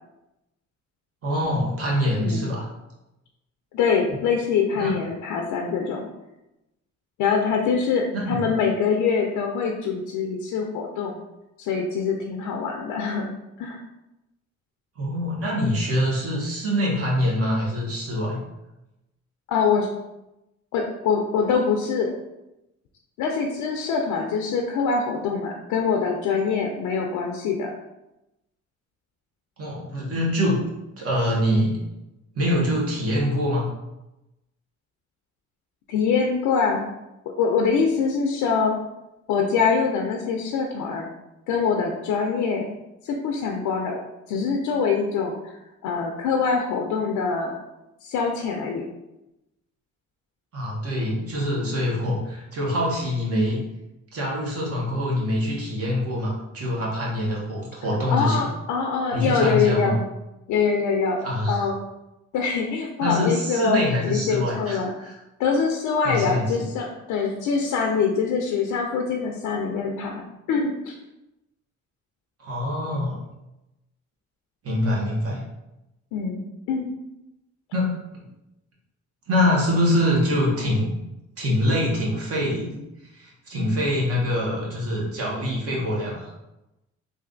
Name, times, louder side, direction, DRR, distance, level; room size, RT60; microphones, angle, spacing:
voice 1, 1.2-2.7 4.7-4.9 8.1-8.4 15.0-18.4 29.6-30.6 31.0-31.8 32.3-33.7 50.5-53.6 54.1-58.5 59.1-59.9 61.2-61.6 63.0-65.2 66.0-66.7 72.4-73.2 74.6-75.5 77.7-78.2 79.3-80.9 81.4-82.8 83.1-86.3, left 1 dB, 50° right, -3 dB, 1.4 m, -24 dB
voice 2, 3.7-6.1 7.2-11.2 11.6-13.3 13.6-13.8 19.5-19.9 20.7-22.1 23.2-27.7 35.9-36.9 37.4-38.7 39.3-41.1 41.5-42.8 43.0-45.5 45.8-47.6 48.0-48.9 58.1-60.0 60.5-61.2 61.5-61.7 62.3-65.0 65.4-70.2 70.5-70.9 76.1-76.9, left 5 dB, 90° left, 1 dB, 0.5 m, -24 dB
3.3 x 2.6 x 3.8 m, 0.94 s
cardioid pair, 90°, 30 cm